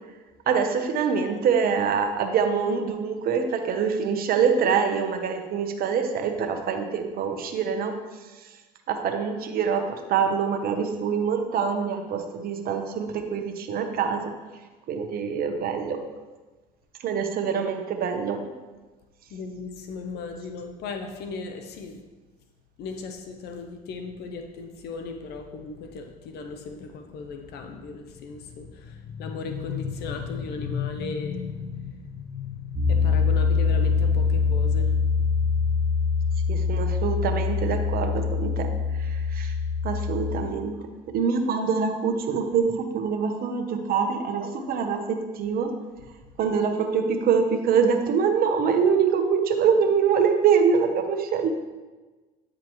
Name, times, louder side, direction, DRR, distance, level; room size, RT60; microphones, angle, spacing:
voice 1, 0.5-7.9 8.9-14.3 14.9-16.0 17.0-18.4 36.5-38.7 39.0-39.5 39.8-40.8 41.1-45.7 46.4-51.5, right 6 dB, 55° right, 5 dB, 1.0 m, -24 dB
voice 2, 19.3-22.0 22.8-35.0, left 5 dB, 65° left, 6 dB, 0.7 m, -35 dB
Piano, 32.7-40.4, left 5 dB, 30° right, 1.0 m, -24 dB
8.9 x 4.9 x 3.1 m, 1.2 s
supercardioid pair, 90°, 18 cm